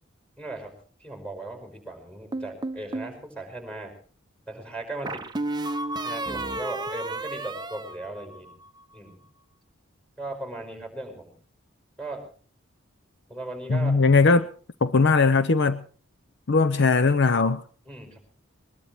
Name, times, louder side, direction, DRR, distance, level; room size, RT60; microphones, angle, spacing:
voice 1, 0.4-0.7 1.0-4.0 4.5-5.3 6.0-8.5 8.9-9.2 10.2-11.3 12.0-12.3 13.3-14.0 15.1-15.5 17.9-18.2, right 2 dB, 5° left, 6 dB, 5.1 m, -37 dB
sound 1, 2.3-3.2 5.1-8.7, right 2 dB, 20° right, 0.7 m, -32 dB
voice 2, 13.7-14.5 14.8-15.8 16.5-17.6, left 4 dB, 60° left, 12 dB, 0.7 m, -19 dB
21.0 x 21.0 x 3.1 m, 0.40 s
head